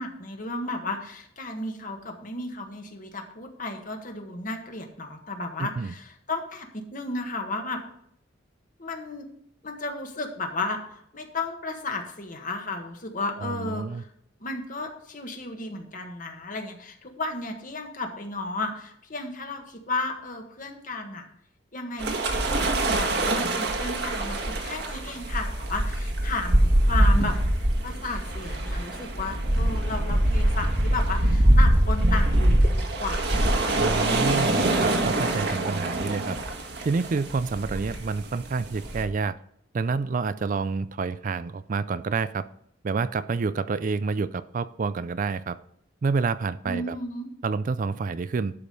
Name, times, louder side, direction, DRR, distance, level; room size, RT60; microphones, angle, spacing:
voice 1, 0.0-7.8 8.8-9.3 9.6-14.1 14.4-21.3 21.7-34.7 46.6-47.3, left 2 dB, 45° left, 4 dB, 1.5 m, -34 dB
voice 2, 5.6-5.9 13.4-14.0 33.8-36.4 36.8-39.3 39.7-42.4 42.8-45.6 46.0-47.0 47.4-48.5, right 4 dB, 45° right, 14 dB, 0.4 m, -28 dB
sound 1, 22.0-39.0, right 1 dB, 60° right, 1.5 m, -24 dB
11.5 x 5.1 x 5.4 m, 0.70 s
head